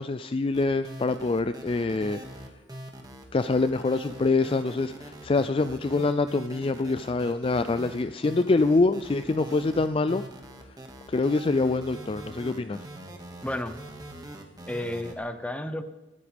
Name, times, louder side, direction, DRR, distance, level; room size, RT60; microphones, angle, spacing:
voice 1, 0.0-2.2 3.3-10.2 11.1-12.8, left 3 dB, 30° left, 11 dB, 0.4 m, -25 dB
sound 1, 0.5-15.1, right 1 dB, 20° right, 2.0 m, -43 dB
voice 2, 13.4-13.8 14.7-15.8, left 1 dB, 5° left, 9 dB, 0.9 m, -32 dB
24.0 x 13.5 x 3.5 m, 1.1 s
head